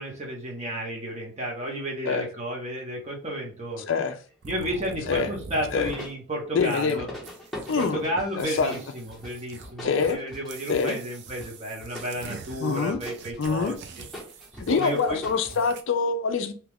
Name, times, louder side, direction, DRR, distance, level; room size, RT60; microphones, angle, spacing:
voice 1, 0.0-3.8 4.4-7.1 7.7-14.0 14.7-15.2, equal, 30° right, 0.9 m, -32 dB
voice 2, 3.9-4.2 5.1-5.3 5.7-5.9 6.5-7.1 7.7-8.0 8.4-8.8 9.8-10.2 10.7-11.0 12.6-13.0 13.4-13.8 14.7-16.5, left 5 dB, 60° left, 0.4 m, -25 dB
sound 1, 4.4-6.1 6.6-7.0 7.2-8.1 8.4-10.2 10.5-15.8, right 5 dB, 50° right, 0.4 m, -44 dB
sound 2, 5.8-6.2 6.6-6.7 7.0-15.7, left 1 dB, ahead, 0.9 m, -42 dB
2.9 x 2.4 x 3.4 m
head